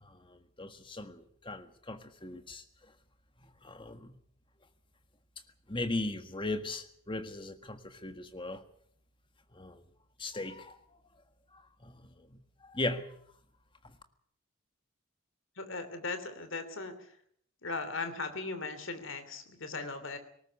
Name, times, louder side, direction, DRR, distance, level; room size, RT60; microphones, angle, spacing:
voice 1, 0.0-2.9 3.6-4.1 5.7-8.6 9.5-9.8 10.2-10.8 11.5-13.1, left 2 dB, 20° left, 1.6 m, -38 dB
voice 2, 15.6-17.2 17.6-20.2, left 3 dB, 60° left, 3.0 m, -38 dB
19.5 x 18.5 x 8.4 m
head